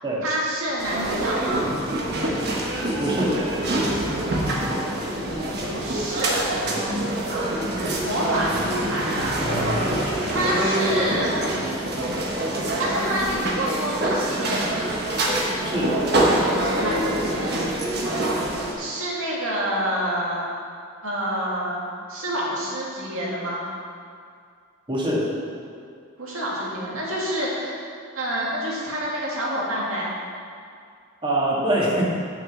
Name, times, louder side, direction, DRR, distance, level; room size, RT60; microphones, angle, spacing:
voice 1, 0.2-1.7 5.6-6.5 8.0-9.4 10.0-11.3 12.8-14.9 16.6-17.6 17.9-20.4 21.0-21.8 22.1-23.6 26.2-27.8 28.2-30.1, right 1 dB, 90° right, -5 dB, 2.2 m, -28 dB
sound 1, 0.8-18.7, right 1 dB, 55° right, 1.3 m, -25 dB
voice 2, 3.0-3.4 15.6-16.0 24.9-25.3 31.2-32.0, right 1 dB, 25° right, -5 dB, 1.8 m, -23 dB
6.4 x 6.1 x 7.1 m, 2.2 s
head